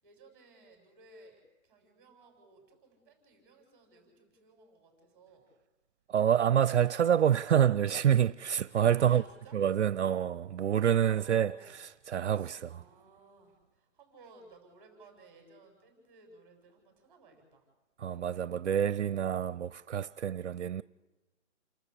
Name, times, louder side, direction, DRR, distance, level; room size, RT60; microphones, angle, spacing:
voice 1, 0.0-5.4 8.6-9.6 10.9-11.8 12.3-17.6, right 3 dB, 5° right, 7.0 m, -58 dB
voice 2, 6.1-9.2 9.5-12.8 18.0-20.8, right 9 dB, 65° right, 0.6 m, -27 dB
29.0 x 13.0 x 8.4 m
hypercardioid pair, 170°, 37 cm